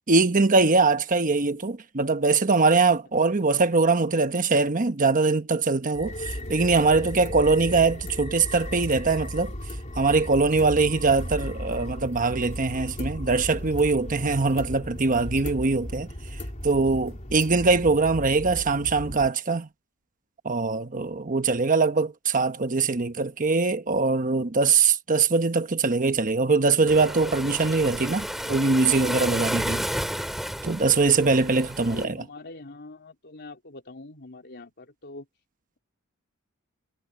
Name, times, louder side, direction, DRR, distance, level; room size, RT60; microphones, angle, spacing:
voice 1, 0.1-9.5 10.0-16.1 16.6-19.7 20.4-29.9 30.6-32.2, right 4 dB, 40° right, 1.1 m, -22 dB
voice 2, 3.4-3.7 6.3-6.6 28.4-28.7 31.9-35.3, left 2 dB, 50° left, 3.5 m, -44 dB
sound 1, 5.9-19.3, left 1 dB, 35° left, 3.2 m, -36 dB
Waves surf, 26.9-32.0, equal, ahead, 2.3 m, -31 dB
head